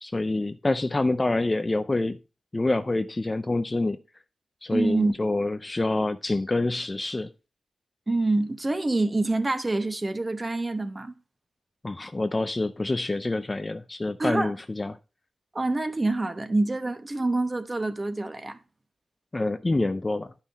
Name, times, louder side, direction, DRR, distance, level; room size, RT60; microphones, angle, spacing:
voice 1, 0.0-2.2 2.5-4.0 4.6-7.3 11.8-15.0 19.3-20.3, left 2 dB, 20° left, 0.5 m, -27 dB
voice 2, 4.7-5.1 8.1-11.1 14.2-14.5 15.5-18.6, right 2 dB, 20° right, 0.9 m, -26 dB
11.0 x 5.7 x 4.1 m
wide cardioid pair, 165°, 0 cm